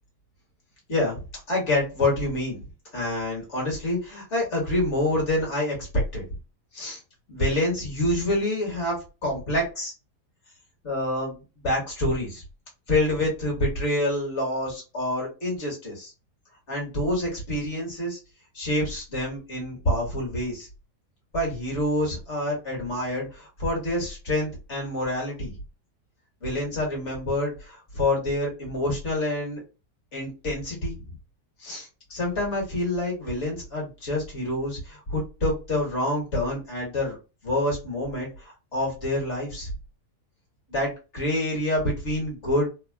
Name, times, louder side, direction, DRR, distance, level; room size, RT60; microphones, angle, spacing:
voice 1, 0.9-1.2 1.5-2.7 2.9-5.9 6.1-6.2 6.7-7.0 7.3-9.9 10.8-12.4 12.9-16.1 16.7-18.2 18.5-20.7 21.3-25.5 26.4-29.6 30.1-31.1 31.6-37.2 37.4-39.7 40.7-42.7, left 1 dB, 45° left, -3 dB, 1.7 m, -27 dB
3.4 x 2.2 x 2.2 m, 0.30 s
omnidirectional pair, 1.7 m